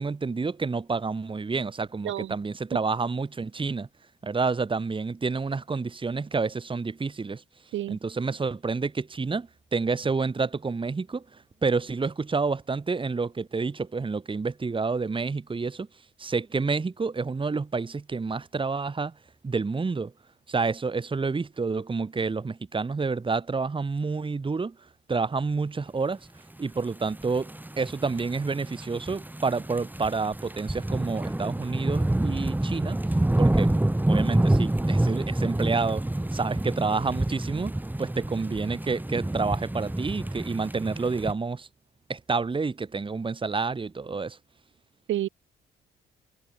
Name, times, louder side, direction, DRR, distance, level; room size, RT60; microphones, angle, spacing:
voice 1, 0.0-3.9 4.2-7.4 7.9-15.9 16.2-19.1 19.4-20.1 20.5-24.8 25.1-26.2 26.6-33.0 33.4-33.7 34.1-36.1 36.3-41.7 42.1-44.4, right 4 dB, 25° right, 2.1 m, -29 dB
voice 2, 2.0-2.4 7.7-8.0 45.1-45.3, right 13 dB, 75° right, 2.4 m, -29 dB
sound 1, 27.0-41.3, right 1 dB, 10° right, 3.4 m, -27 dB
cardioid pair, 90°, 20 cm